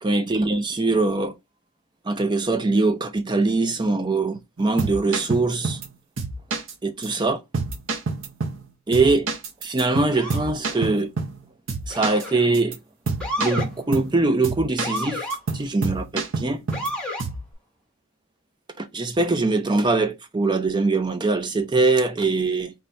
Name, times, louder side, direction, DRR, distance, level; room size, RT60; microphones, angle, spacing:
voice 1, 0.0-1.3 2.1-5.8 6.8-7.4 8.9-9.3 9.6-11.1 11.9-12.8 13.4-15.3 15.5-16.6 18.8-22.7, right 3 dB, 20° right, 0.4 m, -22 dB
sound 1, 4.6-5.9 6.2-6.7 7.0-7.1 7.5-8.7 8.9-11.4 11.7-12.3 12.5-12.8 13.1-14.1 14.4-15.0 15.3-16.9 17.2-17.5, right 3 dB, 65° right, 0.7 m, -28 dB
Motor vehicle (road) / Siren, 10.1-10.5 11.9-12.5 13.2-13.7 14.8-15.4 16.7-17.3, equal, 5° left, 1.0 m, -30 dB
3.9 x 2.2 x 4.3 m
head